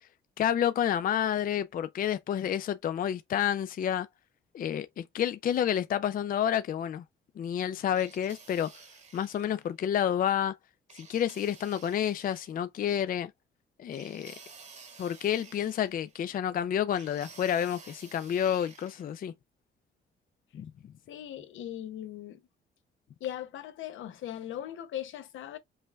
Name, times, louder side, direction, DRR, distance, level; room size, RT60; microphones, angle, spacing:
voice 1, 0.4-4.1 4.5-7.0 7.4-8.7 9.1-10.5 10.9-13.3 13.8-14.3 15.0-19.3 20.5-20.7, left 9 dB, 45° left, 0.4 m, -29 dB
sound 1, 7.9-9.6 10.9-12.5 13.9-16.3 16.9-19.1, right 5 dB, 35° right, 1.2 m, -52 dB
voice 2, 21.1-22.4 23.2-25.6, left 11 dB, 75° left, 0.9 m, -39 dB
5.4 x 2.2 x 3.4 m
cardioid pair, 90°, 20 cm